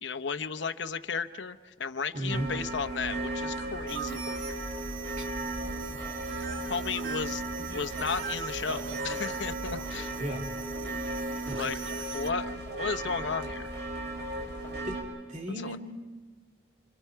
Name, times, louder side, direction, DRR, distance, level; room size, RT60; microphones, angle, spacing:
voice 1, 0.0-4.4 6.7-7.4 7.7-10.1 11.6-11.9 12.1-13.7 15.6-15.8, left 5 dB, 75° left, 10 dB, 0.9 m, -34 dB
voice 2, 2.1-2.5 5.2-5.5 10.2-10.4 11.4-11.6 14.8-15.0 15.3-15.8, right 1 dB, 40° right, 1 dB, 2.8 m, -35 dB
sound 1, 2.3-15.0, right 2 dB, 60° right, 6.5 m, -36 dB
sound 2, 3.9-12.3, right 7 dB, 85° right, 1.3 m, -42 dB
28.5 x 28.0 x 4.7 m, 1.5 s
head